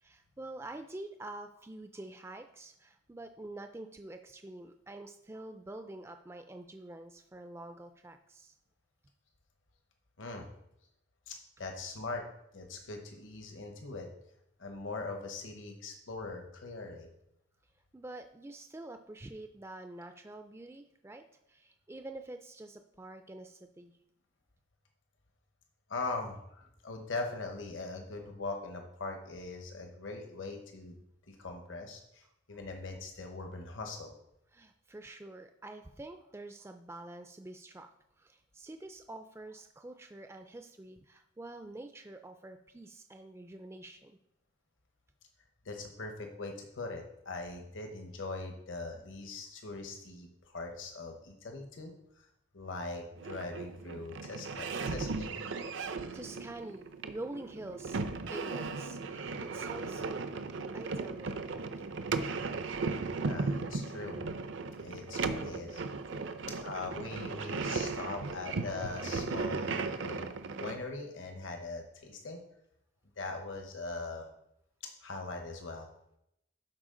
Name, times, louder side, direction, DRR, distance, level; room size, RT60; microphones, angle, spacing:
voice 1, 0.0-8.5 17.9-23.9 34.5-37.9 38.2-44.2 55.8-60.2 60.7-61.3 66.1-66.5 68.0-68.1, right 2 dB, 15° right, 7 dB, 0.3 m, -47 dB
voice 2, 10.2-10.5 11.3-12.2 12.5-14.1 14.6-17.1 25.9-31.0 31.3-32.2 32.5-34.1 45.6-52.3 52.5-55.5 63.2-64.2 64.8-65.8 66.6-72.4 73.2-74.3 74.8-75.9, left 3 dB, 70° left, 4 dB, 1.1 m, -41 dB
sound 1, 53.2-70.8, right 4 dB, 65° right, 0.5 m, -36 dB
12.0 x 4.6 x 3.8 m, 0.79 s
head